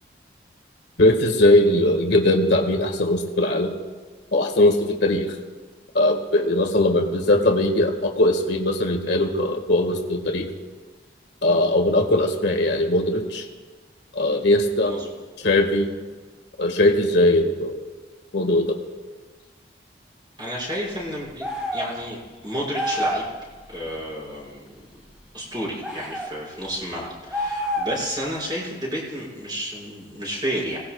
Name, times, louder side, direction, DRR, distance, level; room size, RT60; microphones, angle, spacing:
voice 1, 1.0-3.7 4.3-5.3 5.9-10.5 11.4-13.4 14.1-15.0 15.4-15.9 16.6-17.8 18.3-18.8, left 1 dB, 70° left, 2 dB, 1.7 m, -20 dB
voice 2, 20.4-22.2 22.4-23.3 23.7-24.6 25.3-30.8, equal, 25° right, -4 dB, 5.6 m, -31 dB
sound 1, 21.4-21.9 22.7-23.3 25.8-26.3 27.3-28.1, equal, 5° right, 3.5 m, -27 dB
27.5 x 18.5 x 2.3 m, 1.3 s
head